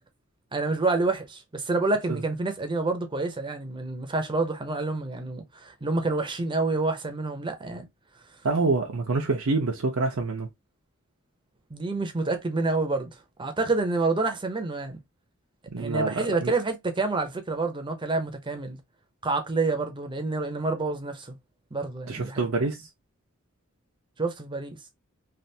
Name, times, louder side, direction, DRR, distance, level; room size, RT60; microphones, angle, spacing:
voice 1, 0.5-7.9 11.7-13.1 13.4-15.0 15.8-18.8 19.2-21.3 21.7-22.7 24.2-24.8, right 3 dB, 25° right, 0.6 m, -28 dB
voice 2, 8.4-10.5 15.7-16.5 22.1-22.9, right 3 dB, 75° right, 0.6 m, -26 dB
3.3 x 2.4 x 2.7 m
head